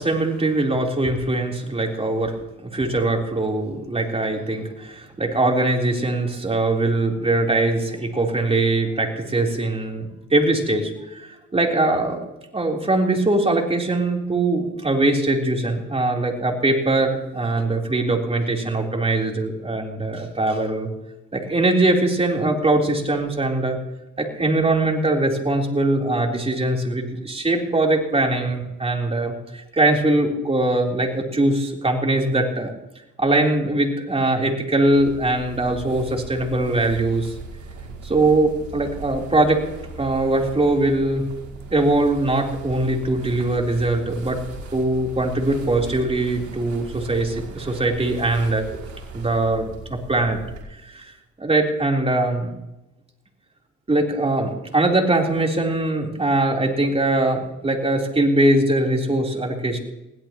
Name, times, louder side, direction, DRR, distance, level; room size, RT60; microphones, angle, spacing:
voice 1, 0.0-2.3 2.6-12.2 12.5-20.9 21.3-23.8 24.2-32.7 33.2-37.3 38.0-39.6 40.0-41.3 41.7-44.4 44.7-48.7 49.1-50.4 50.8-51.1 51.4-52.5 53.9-59.8, right 2 dB, 20° right, 1 dB, 3.7 m, -21 dB
sound 1, 34.9-50.6, right 3 dB, 65° right, 5.7 m, -38 dB
22.0 x 16.5 x 3.0 m, 0.94 s
cardioid pair, 90°, 30 cm